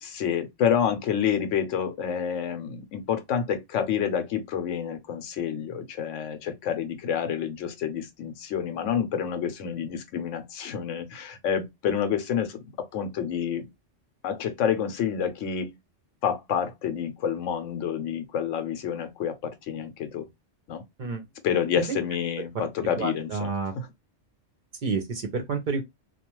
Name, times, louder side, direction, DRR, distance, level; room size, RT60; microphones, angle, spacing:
voice 1, 0.0-13.6 14.2-15.7 16.2-20.3 20.7-20.8 21.4-23.5 23.8-23.9, left 8 dB, 85° left, 1.0 m, -28 dB
voice 2, 23.0-23.7 24.8-25.8, right 4 dB, 55° right, 0.6 m, -29 dB
2.3 x 2.3 x 2.9 m
omnidirectional pair, 1.2 m